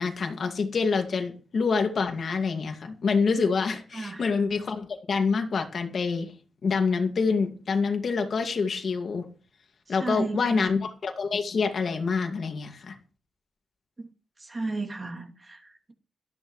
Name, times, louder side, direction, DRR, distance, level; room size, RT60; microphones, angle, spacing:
voice 1, 0.0-6.3 6.6-9.3 9.9-13.0, left 5 dB, 55° left, 5 dB, 2.2 m, -26 dB
voice 2, 3.9-4.2 10.0-10.7 14.0-14.1 14.4-15.9, right 3 dB, 25° right, 1 dB, 2.9 m, -34 dB
18.5 x 13.5 x 3.2 m, 0.37 s
wide cardioid pair, 140°, 0 cm